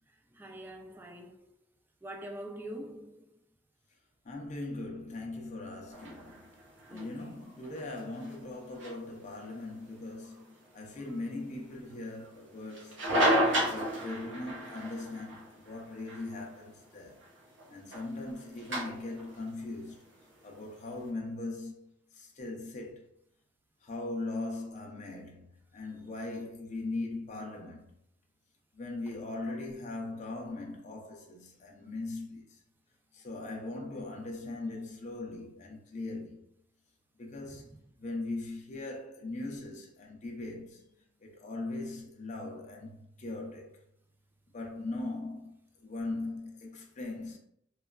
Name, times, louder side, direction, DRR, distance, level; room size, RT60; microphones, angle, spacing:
voice 1, 0.3-1.5 2.0-3.3 6.9-7.4 37.4-37.8, right 1 dB, 10° right, 0.3 m, -45 dB
voice 2, 4.3-6.5 6.9-10.4 10.7-13.1 13.7-17.2 17.7-20.0 20.4-23.0 23.8-27.9 28.7-32.5 33.1-36.4 37.2-37.7 38.0-40.9 41.2-43.8 44.5-45.6 45.8-47.4, left 2 dB, 40° left, 0.5 m, -40 dB
sound 1, 5.9-21.0, equal, 90° right, 0.9 m, -35 dB
3.0 x 2.3 x 2.2 m
head